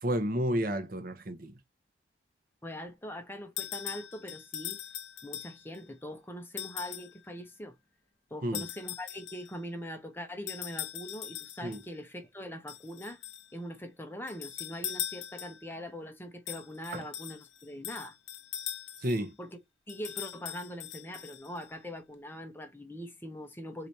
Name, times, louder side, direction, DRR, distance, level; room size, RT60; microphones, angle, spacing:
voice 1, 0.0-1.5 8.4-8.7 11.6-11.8 16.9-17.0 19.0-19.3, equal, 50° right, 0.8 m, -31 dB
voice 2, 2.6-4.8 5.2-7.8 8.3-13.2 13.5-18.2 19.4-19.6 19.9-23.9, equal, 10° left, 0.7 m, -42 dB
sound 1, 3.6-5.8 6.6-7.2 8.5-9.6 10.5-11.9 12.7-13.5 14.3-15.7 16.5-19.2 19.9-21.7, left 11 dB, 85° left, 0.5 m, -40 dB
4.1 x 2.8 x 4.5 m
head